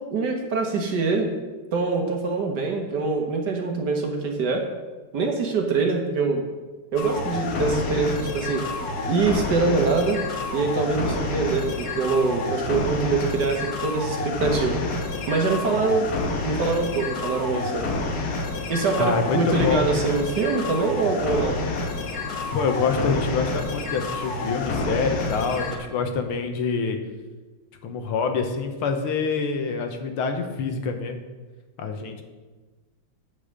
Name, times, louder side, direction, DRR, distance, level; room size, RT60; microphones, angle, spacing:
voice 1, 0.0-1.3 1.7-4.6 5.1-6.4 6.9-8.7 9.1-10.2 10.5-14.8 15.3-17.8 18.7-21.6, right 4 dB, 55° right, 3 dB, 1.6 m, -24 dB
sound 1, 7.0-25.8, left 3 dB, 55° left, 1.4 m, -29 dB
voice 2, 18.9-19.9 22.5-27.0 27.8-31.2 31.8-32.2, left 5 dB, 85° left, 5 dB, 1.9 m, -26 dB
8.7 x 5.5 x 6.6 m, 1.3 s
omnidirectional pair, 2.3 m